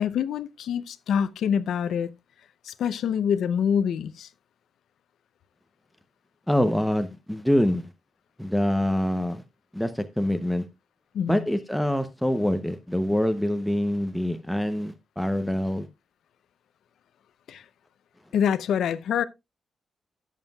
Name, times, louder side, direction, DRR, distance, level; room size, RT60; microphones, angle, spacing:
voice 1, 0.0-2.1 2.6-4.3 11.1-11.5 17.5-17.6 18.3-19.2, left 8 dB, 85° left, 0.6 m, -25 dB
voice 2, 6.5-7.9 8.4-9.4 9.7-10.6 11.3-15.9, left 1 dB, ahead, 0.7 m, -25 dB
16.0 x 7.4 x 2.3 m
cardioid pair, 130°, 0 cm